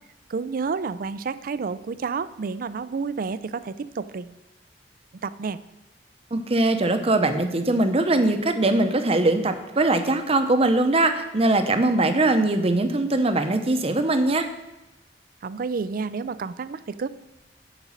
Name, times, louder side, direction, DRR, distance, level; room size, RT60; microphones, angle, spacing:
voice 1, 0.3-4.3 5.2-5.6 15.4-17.1, right 5 dB, 55° right, 15 dB, 0.4 m, -30 dB
voice 2, 6.3-14.5, right 2 dB, 35° right, 7 dB, 0.8 m, -21 dB
8.0 x 5.2 x 7.3 m, 0.96 s
head